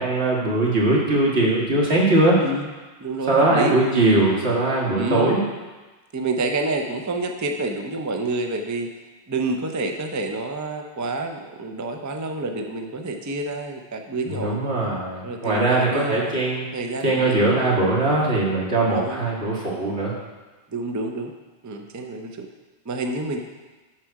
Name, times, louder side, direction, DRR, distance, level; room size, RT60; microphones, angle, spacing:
voice 1, 0.0-2.4 3.3-5.4 14.3-16.6 17.0-20.1, right 2 dB, 70° right, -4 dB, 2.0 m, -20 dB
voice 2, 2.4-2.7 3.0-3.8 4.9-5.4 6.1-8.9 9.3-14.6 15.2-16.4 16.7-17.4 18.9-19.3 20.7-21.3 21.6-22.5 22.9-23.4, right 2 dB, 25° right, 4 dB, 0.4 m, -28 dB
7.4 x 6.2 x 4.7 m, 1.2 s
omnidirectional pair, 1.1 m